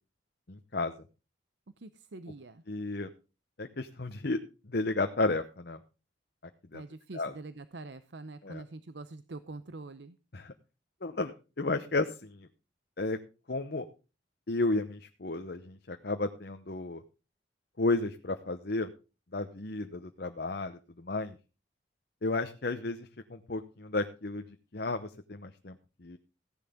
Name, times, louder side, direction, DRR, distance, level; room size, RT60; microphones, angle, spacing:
voice 1, 0.5-0.9 2.7-3.1 3.6-4.4 4.6-5.8 6.7-6.8 7.1-7.3 8.4-8.6 10.3-10.5 11.0-12.5 13.0-13.2 13.5-13.9 14.5-17.0 17.8-18.9 19.3-21.4 22.2-24.4 24.7-26.2, left 2 dB, 55° left, 6 dB, 0.9 m, -33 dB
voice 2, 1.8-2.6 6.7-10.2, right 2 dB, 65° right, 13 dB, 0.7 m, -45 dB
15.5 x 10.5 x 3.7 m, 0.32 s
head